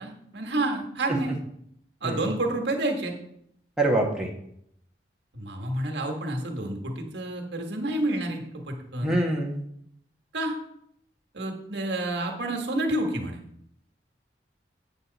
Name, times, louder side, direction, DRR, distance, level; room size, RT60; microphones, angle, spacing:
voice 1, 0.0-1.3 2.0-3.2 5.3-9.2 10.3-10.5 11.3-13.4, right 2 dB, 75° right, 2 dB, 1.6 m, -29 dB
voice 2, 3.8-4.3 9.0-9.6, right 1 dB, 5° right, -3 dB, 1.2 m, -25 dB
8.1 x 7.6 x 4.0 m, 0.72 s
head